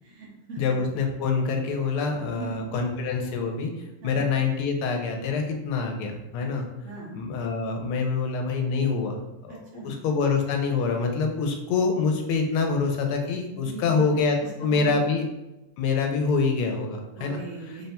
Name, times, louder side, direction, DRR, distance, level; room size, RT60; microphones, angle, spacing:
voice 1, 0.0-0.8 2.3-2.6 4.0-4.2 6.4-6.5 6.8-7.1 9.5-10.0 13.6-15.1 17.1-17.9, right 4 dB, 65° right, -3 dB, 0.7 m, -40 dB
voice 2, 0.6-3.7 4.0-6.7 7.1-9.6 9.8-15.3 15.8-17.4, left 4 dB, 90° left, 3 dB, 1.5 m, -26 dB
3.7 x 2.1 x 4.1 m, 1.0 s
omnidirectional pair, 2.3 m